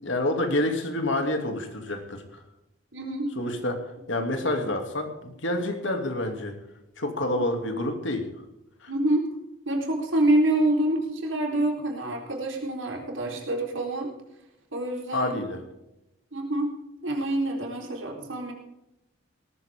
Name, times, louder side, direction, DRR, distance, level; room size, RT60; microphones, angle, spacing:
voice 1, 0.0-2.4 3.4-6.6 7.0-8.3 8.8-8.9 15.1-15.6, left 1 dB, 70° left, 5 dB, 2.7 m, -28 dB
voice 2, 2.9-3.3 4.4-4.6 8.9-9.3 9.7-14.1 14.7-15.4 16.3-16.7 17.0-18.5, right 1 dB, 75° right, 1 dB, 4.0 m, -26 dB
18.5 x 14.0 x 3.7 m, 0.91 s
head